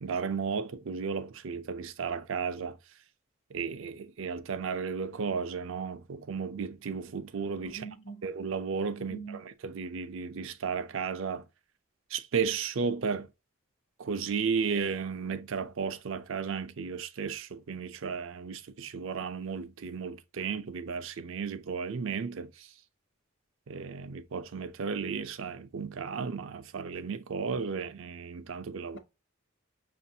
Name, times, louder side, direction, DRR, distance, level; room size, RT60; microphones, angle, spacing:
voice 1, 0.0-2.8 3.5-7.9 8.2-11.5 12.1-13.3 14.0-22.7 23.7-29.0, right 5 dB, 70° right, 0.5 m, -34 dB
voice 2, 7.6-8.2 9.0-9.4 28.9-29.0, right 4 dB, 60° left, 0.9 m, -43 dB
5.9 x 2.5 x 2.7 m
head